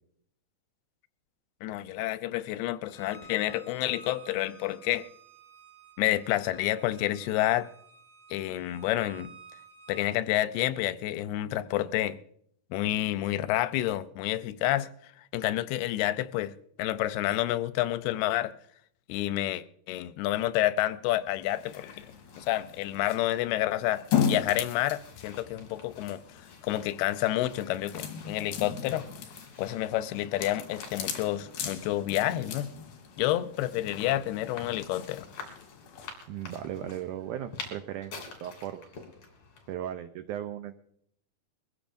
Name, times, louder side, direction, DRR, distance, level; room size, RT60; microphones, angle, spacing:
voice 1, 1.6-5.1 6.0-7.7 8.3-9.3 9.9-12.2 12.7-14.9 15.3-18.5 19.1-22.1 22.4-26.2 26.6-29.1 29.6-32.7 33.2-35.3, left 14 dB, 90° left, 2.6 m, -29 dB
Bowed string instrument, 2.9-10.1, right 4 dB, 5° left, 4.4 m, -53 dB
sound 1, 21.2-39.7, left 4 dB, 50° left, 4.0 m, -49 dB
sound 2, 21.5-36.1, left 8 dB, 70° left, 3.4 m, -37 dB
voice 2, 36.3-38.9 39.7-40.8, right 11 dB, 90° right, 1.7 m, -37 dB
23.0 x 15.5 x 2.6 m
omnidirectional pair, 4.4 m